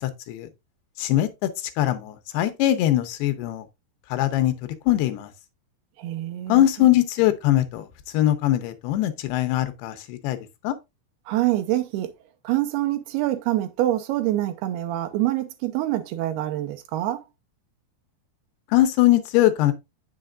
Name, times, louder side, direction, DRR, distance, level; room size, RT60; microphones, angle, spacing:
voice 1, 0.0-0.5 1.0-1.5 1.8-3.6 4.1-4.5 4.9-5.3 6.5-7.9 8.1-10.4 10.6-10.7 18.7-19.7, left 14 dB, 85° left, 2.8 m, -21 dB
voice 2, 6.0-6.9 11.3-12.1 12.4-17.2, right 14 dB, 90° right, 2.7 m, -26 dB
8.6 x 6.7 x 2.4 m
omnidirectional pair, 4.6 m